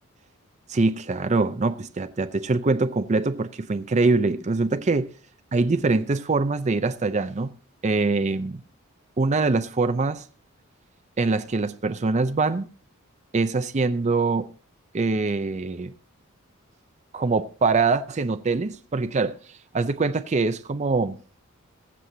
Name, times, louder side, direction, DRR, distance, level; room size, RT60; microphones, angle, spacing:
voice 1, 0.7-5.1 5.5-7.5 7.8-8.6 9.2-10.3 11.2-12.7 13.3-14.5 14.9-15.9 17.1-21.2, right 3 dB, 35° right, 0.5 m, -24 dB
22.0 x 7.6 x 2.7 m
head